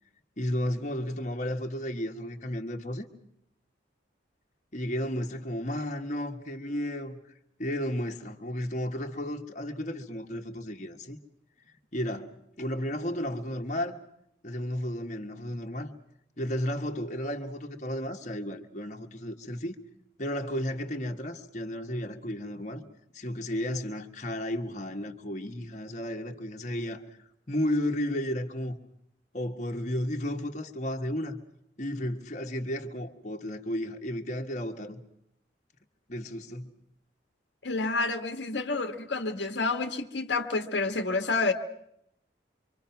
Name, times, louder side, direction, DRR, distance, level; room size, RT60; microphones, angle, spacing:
voice 1, 0.4-3.1 4.7-7.2 7.6-11.2 11.9-14.0 14.4-15.9 16.4-19.7 20.2-22.8 23.1-27.0 27.5-28.7 29.3-31.4 31.8-35.0 36.1-36.7, equal, 40° left, 1.6 m, -33 dB
voice 2, 37.6-41.5, left 3 dB, 75° left, 1.5 m, -29 dB
25.5 x 25.5 x 5.9 m
head